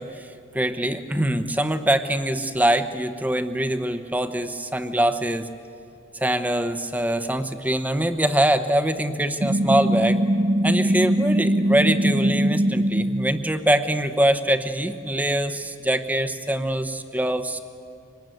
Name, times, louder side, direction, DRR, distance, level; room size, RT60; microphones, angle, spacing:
voice 1, 0.0-5.5 6.1-10.2 10.6-17.6, right 1 dB, 10° right, 10 dB, 0.9 m, -23 dB
sound 1, 9.4-13.3, right 1 dB, 25° right, 0.5 m, -21 dB
25.0 x 19.5 x 9.2 m, 2.6 s
head